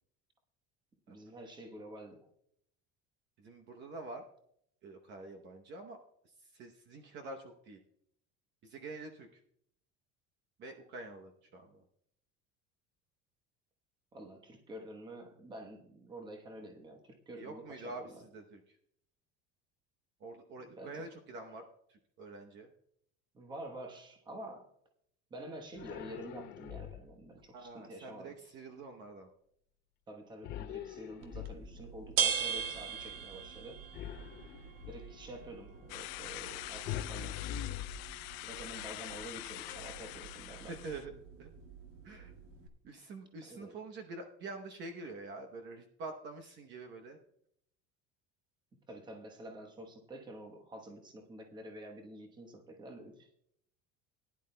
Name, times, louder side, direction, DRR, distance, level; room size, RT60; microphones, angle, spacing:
voice 1, 1.1-2.3 14.1-18.3 20.6-21.1 23.3-24.7 25.3-28.4 30.1-33.8 34.9-37.4 38.4-40.7 43.4-43.8 48.9-53.3, right 1 dB, 15° right, 3 dB, 1.1 m, -48 dB
voice 2, 3.4-4.2 4.8-6.0 6.5-7.8 8.6-9.4 10.6-11.8 17.4-18.6 20.2-22.7 27.5-29.3 40.7-41.1 41.4-41.5 42.0-42.3 42.8-47.2, right 3 dB, 40° right, 4 dB, 0.9 m, -46 dB
sound 1, 25.7-27.3 30.4-32.0 33.9-35.1 36.8-38.5, left 11 dB, 35° left, 0.5 m, -43 dB
sound 2, 31.2-42.7, right 7 dB, 75° right, 1.6 m, -41 dB
sound 3, 35.9-41.0, left 19 dB, 80° left, 0.6 m, -45 dB
19.0 x 10.5 x 2.2 m, 0.71 s
cardioid pair, 175°, 29 cm